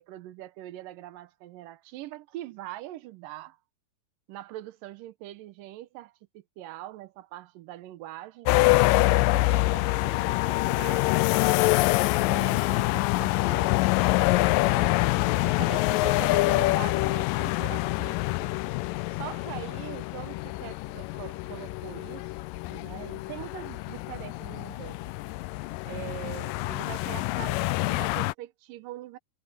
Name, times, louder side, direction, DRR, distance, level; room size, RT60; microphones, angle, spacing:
voice 1, 0.0-3.6 4.3-11.5 12.2-15.0 15.4-18.6 19.1-22.3 22.7-25.0 25.8-29.2, right 15 dB, 80° right, 2.5 m, -43 dB
sound 1, 8.5-28.3, left 20 dB, 85° left, 2.2 m, -25 dB
omnidirectional pair, 3.9 m